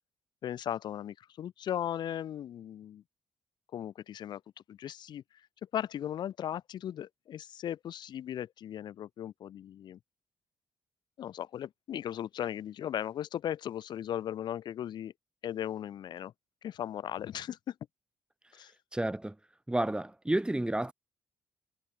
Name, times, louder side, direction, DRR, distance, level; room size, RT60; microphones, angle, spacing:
voice 1, 0.4-3.0 3.7-4.4 4.7-5.2 5.7-10.0 11.2-15.1 15.4-16.3 16.6-17.7 18.5-18.7, left 10 dB, 70° left, 4.7 m, -37 dB
voice 2, 18.9-19.4 19.7-20.9, right 1 dB, 10° right, 2.9 m, -30 dB
supercardioid pair, 55°, 8 cm